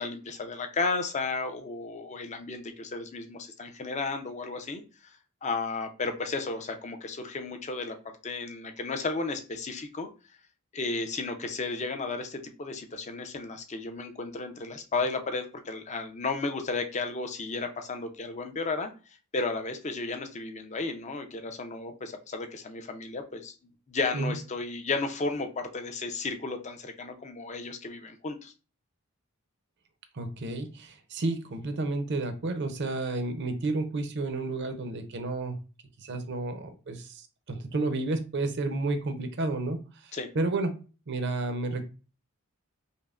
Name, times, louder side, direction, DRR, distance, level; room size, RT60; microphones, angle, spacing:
voice 1, 0.0-8.0 8.2-10.1 10.7-23.5 23.9-28.5 40.1-40.3, left 3 dB, 30° left, 6 dB, 0.5 m, -33 dB
voice 2, 30.1-35.6 36.0-40.8 41.1-41.9, right 2 dB, 50° right, 8 dB, 0.6 m, -31 dB
5.3 x 2.1 x 2.4 m, 0.33 s
head